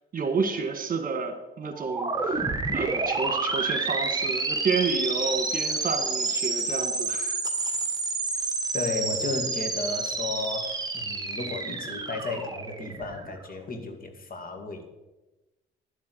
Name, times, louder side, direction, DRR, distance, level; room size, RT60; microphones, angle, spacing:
voice 1, 0.1-2.4 2.7-7.4, right 4 dB, 45° right, 7 dB, 1.8 m, -30 dB
sound 1, 1.7-13.4, right 3 dB, 20° right, 1.6 m, -29 dB
voice 2, 8.7-14.9, left 3 dB, 45° left, 5 dB, 2.1 m, -33 dB
11.0 x 7.3 x 8.0 m, 1.1 s
cardioid pair, 90°, 20 cm